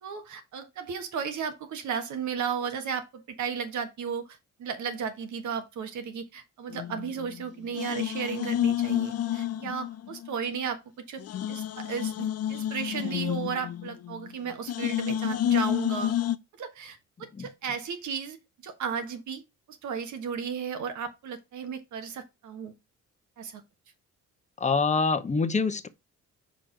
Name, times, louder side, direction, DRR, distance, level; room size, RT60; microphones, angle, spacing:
voice 1, 0.0-4.3 4.6-11.2 11.5-16.1 16.6-18.4 18.6-19.4 19.7-22.7 23.4-23.6, right 6 dB, 70° right, 1.6 m, -34 dB
sound 1, 6.7-7.4 7.7-10.3 10.7-10.8 11.2-14.3 14.7-16.4, left 11 dB, 55° left, 0.6 m, -30 dB
voice 2, 17.2-17.5 24.6-25.9, left 4 dB, 25° left, 0.9 m, -26 dB
5.2 x 4.3 x 5.0 m
cardioid pair, 90°, 30 cm